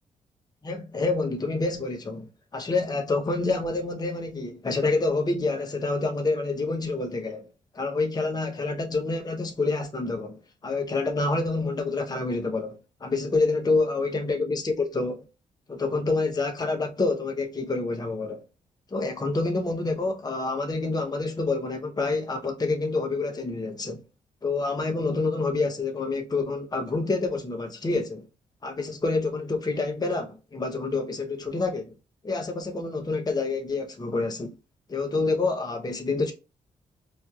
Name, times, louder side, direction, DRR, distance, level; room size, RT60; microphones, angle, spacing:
voice 1, 0.6-2.3 2.5-7.4 7.7-15.2 15.7-18.4 18.9-24.0 24.4-28.3 28.6-31.9 32.2-34.5 34.9-36.3, left 3 dB, 25° left, 0.7 m, -27 dB
4.1 x 2.3 x 2.3 m
hypercardioid pair, 40°, 17 cm